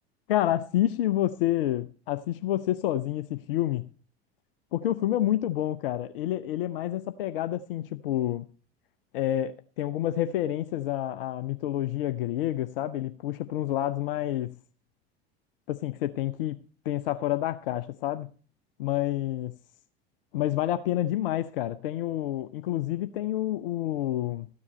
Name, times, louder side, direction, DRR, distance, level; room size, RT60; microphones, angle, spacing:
voice 1, 0.3-3.9 4.7-8.5 9.1-14.6 15.7-16.6 16.8-18.3 18.8-19.6 20.3-24.5, left 13 dB, 60° left, 0.7 m, -28 dB
13.5 x 9.7 x 4.3 m
figure-of-eight pair, 75°, 31 cm